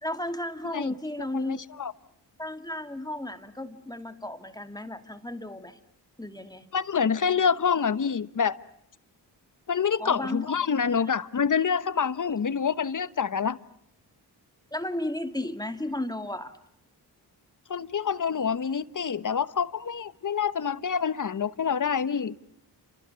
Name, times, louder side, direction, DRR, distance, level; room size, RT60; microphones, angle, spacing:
voice 1, 0.0-1.6 2.4-5.8 6.2-6.7 10.0-10.5 10.9-11.1 12.5-12.6 14.7-16.5, left 1 dB, 10° left, 8 dB, 2.2 m, -34 dB
voice 2, 1.3-1.9 6.7-8.6 9.7-13.6 17.7-22.3, left 6 dB, 45° left, 15 dB, 1.1 m, -27 dB
30.0 x 27.0 x 7.0 m, 0.71 s
cardioid pair, 80°, 41 cm